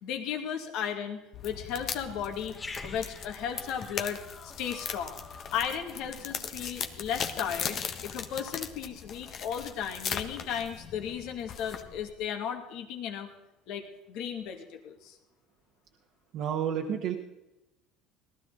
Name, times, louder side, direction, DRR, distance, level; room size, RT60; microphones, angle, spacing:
voice 1, 0.0-2.6 2.8-5.2 5.5-13.3 13.7-15.2, left 8 dB, 70° left, 3 dB, 2.3 m, -35 dB
sound 1, 1.3-12.1, left 7 dB, 50° left, 1.4 m, -39 dB
Growling, 2.5-7.1, left 3 dB, 25° left, 2.2 m, -47 dB
voice 2, 16.3-17.2, right 8 dB, 60° right, 2 dB, 1.4 m, -30 dB
18.5 x 12.5 x 4.0 m, 0.93 s
supercardioid pair, 95°, 0 cm